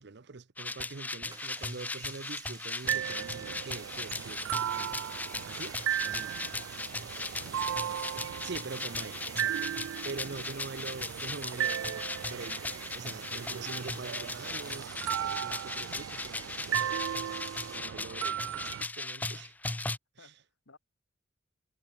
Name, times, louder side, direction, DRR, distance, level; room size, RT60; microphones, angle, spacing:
voice 1, 0.0-4.9 5.4-6.4 8.4-9.7 10.0-17.0 17.7-19.5, right 3 dB, 55° right, 0.8 m, -44 dB
sound 1, 0.6-20.0, left 3 dB, 10° left, 0.3 m, -38 dB
sound 2, 1.3-17.8, right 6 dB, 20° right, 0.8 m, -50 dB
sound 3, 2.8-18.8, right 10 dB, 90° right, 0.3 m, -36 dB
voice 2, 6.5-6.9 7.4-8.0 10.2-10.7 20.2-20.8, left 3 dB, 80° left, 2.1 m, -58 dB
head